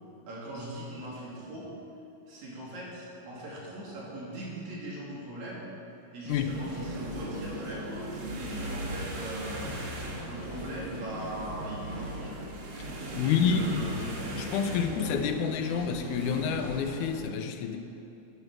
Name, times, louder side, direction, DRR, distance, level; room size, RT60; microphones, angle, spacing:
voice 1, 0.3-1.7 2.3-5.7 6.1-9.7 10.3-12.4 13.2-14.0, right 1 dB, 70° right, -5 dB, 3.9 m, -40 dB
voice 2, 6.3-6.6 13.2-13.9 14.3-17.8, left 7 dB, 85° left, 8 dB, 2.2 m, -28 dB
sound 1, 6.3-17.2, right 1 dB, 50° right, 2.2 m, -38 dB
10.5 x 10.5 x 6.2 m, 2.8 s
omnidirectional pair, 3.5 m